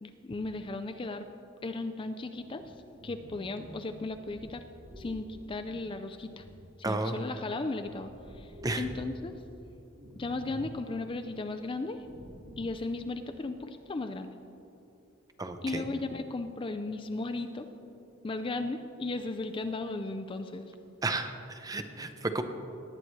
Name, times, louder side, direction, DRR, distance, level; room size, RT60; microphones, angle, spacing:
voice 1, 0.0-1.3 1.6-4.6 5.0-6.4 6.8-9.3 10.1-12.1 12.6-14.3 15.6-17.7 18.2-20.7, left 2 dB, 25° left, 8 dB, 0.4 m, -36 dB
Bath - Body movements underwater, 2.3-7.3 7.6-9.5 10.0-10.8 11.1-11.2 11.9-12.8, equal, 85° right, 2.9 m, -49 dB
voice 2, 6.8-7.2 8.6-8.8 15.4-15.8 21.0-22.4, right 2 dB, 20° right, 8 dB, 0.6 m, -32 dB
19.0 x 8.9 x 3.2 m, 2.9 s
head